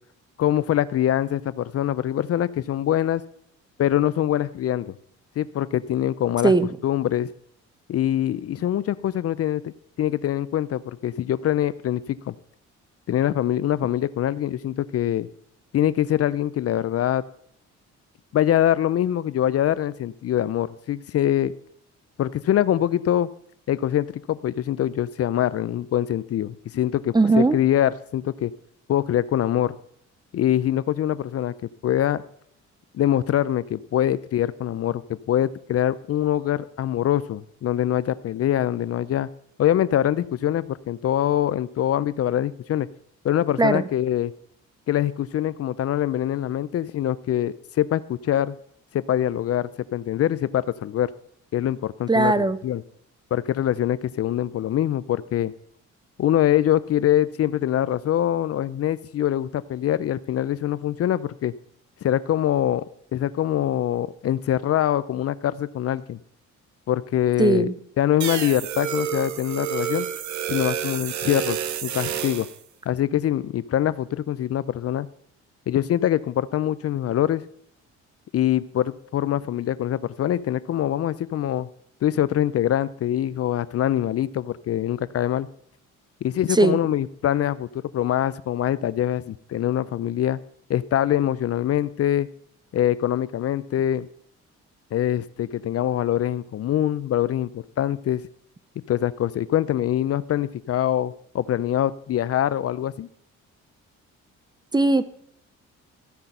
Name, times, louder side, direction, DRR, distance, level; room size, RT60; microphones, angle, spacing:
voice 1, 0.4-3.2 3.8-4.9 5.4-6.5 6.8-7.3 7.9-9.7 10.0-12.3 13.1-15.3 15.7-17.2 18.3-21.5 22.2-23.3 23.7-28.5 28.9-29.7 30.3-32.2 32.9-39.3 39.6-42.9 43.2-44.3 44.9-48.6 48.9-51.1 51.5-52.8 53.3-55.5 56.2-61.5 62.0-62.9 63.1-66.2 66.9-67.7 68.0-70.1 70.5-72.5 72.9-75.1 75.7-77.4 78.3-81.7 82.0-85.5 86.2-90.4 90.7-92.3 92.7-94.1 94.9-98.2 98.9-103.1, left 11 dB, 50° left, 17 dB, 0.5 m, -24 dB
voice 2, 27.1-27.6 43.6-43.8 52.1-52.6 67.4-67.7 86.5-86.8 104.7-105.0, right 2 dB, 15° right, 14 dB, 0.6 m, -18 dB
sound 1, 68.2-72.6, right 10 dB, 70° right, 0.9 m, -29 dB
14.5 x 5.8 x 5.3 m, 0.68 s
cardioid pair, 90°, 30 cm